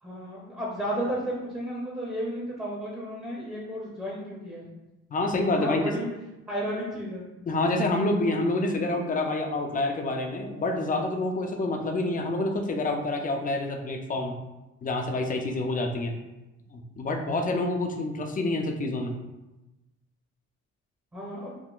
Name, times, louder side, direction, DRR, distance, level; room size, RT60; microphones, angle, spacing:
voice 1, 0.0-4.7 5.6-6.1 6.5-7.2 21.1-21.5, equal, 10° right, -4 dB, 0.7 m, -33 dB
voice 2, 5.1-5.8 7.5-14.4 14.8-16.2 16.7-19.1, left 2 dB, 30° left, 3 dB, 0.4 m, -27 dB
3.6 x 2.1 x 2.4 m, 1.0 s
cardioid pair, 90°, 30 cm